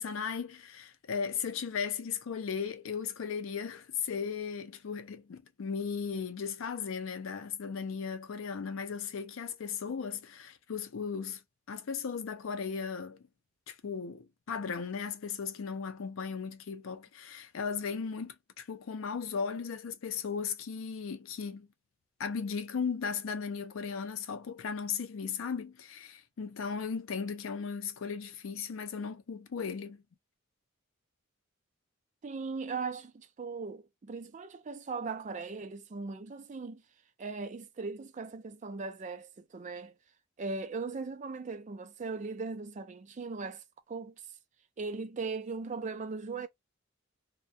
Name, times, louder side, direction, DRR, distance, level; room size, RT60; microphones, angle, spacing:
voice 1, 0.0-11.4 11.7-13.2 13.7-21.7 22.2-30.0, left 6 dB, 75° left, 0.4 m, -36 dB
voice 2, 32.2-36.8 37.2-39.9 40.4-44.1 44.8-46.5, right 4 dB, 35° right, 0.4 m, -39 dB
2.2 x 2.2 x 2.6 m
head